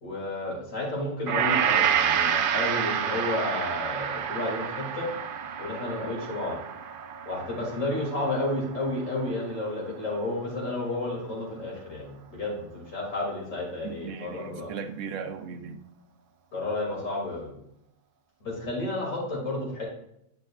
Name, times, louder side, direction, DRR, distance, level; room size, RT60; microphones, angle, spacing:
voice 1, 0.0-5.1 5.6-6.6 7.3-14.7 16.5-17.5 18.4-19.8, left 2 dB, 85° left, -3 dB, 2.8 m, -31 dB
Gong, 1.3-9.7 10.0-10.2, right 8 dB, 60° right, 0.6 m, -29 dB
voice 2, 13.8-15.8, right 6 dB, 75° right, 8 dB, 1.0 m, -37 dB
8.9 x 6.1 x 2.3 m, 0.77 s
omnidirectional pair, 1.3 m